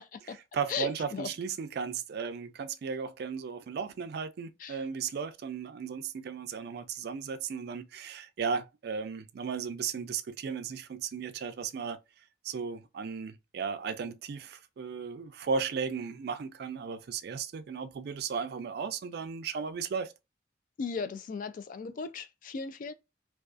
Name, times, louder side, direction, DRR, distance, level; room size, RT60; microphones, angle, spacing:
voice 1, 0.0-0.4 0.7-1.3 4.6-4.8 20.8-22.9, left 5 dB, 50° left, 0.3 m, -37 dB
voice 2, 0.5-12.0 12.4-20.1, right 6 dB, 60° right, 0.3 m, -35 dB
2.3 x 2.3 x 2.4 m
head